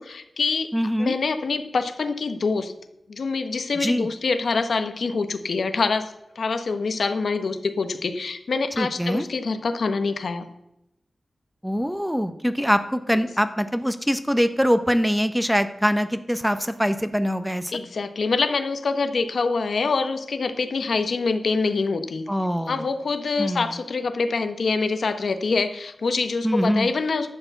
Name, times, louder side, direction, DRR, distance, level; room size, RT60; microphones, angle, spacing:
voice 1, 0.0-0.7 1.0-2.7 3.1-10.5 13.1-13.2 17.7-22.2 22.7-27.3, left 4 dB, 80° left, 9 dB, 0.8 m, -25 dB
voice 2, 0.7-1.1 3.8-4.1 8.8-9.2 11.6-17.7 22.3-22.8 23.4-23.7 26.4-26.9, equal, ahead, 11 dB, 0.6 m, -23 dB
11.5 x 4.7 x 8.0 m, 0.86 s
wide cardioid pair, 105°, 0 cm